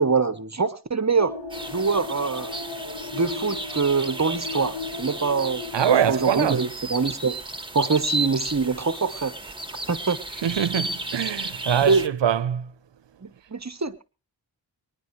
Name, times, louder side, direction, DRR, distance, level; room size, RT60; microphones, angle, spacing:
voice 1, 0.0-1.4 1.7-2.5 3.1-5.7 6.1-7.4 7.7-9.3 9.9-10.2 11.9-12.0 13.2-14.1, right 4 dB, 35° right, 1.0 m, -24 dB
sound 1, 1.2-6.6, left 4 dB, 70° left, 3.5 m, -36 dB
sound 2, 1.5-12.1, right 2 dB, 10° right, 1.9 m, -34 dB
voice 2, 5.7-6.6 10.4-12.7, right 9 dB, 70° right, 0.8 m, -23 dB
24.0 x 10.5 x 3.2 m
cardioid pair, 50°, 45 cm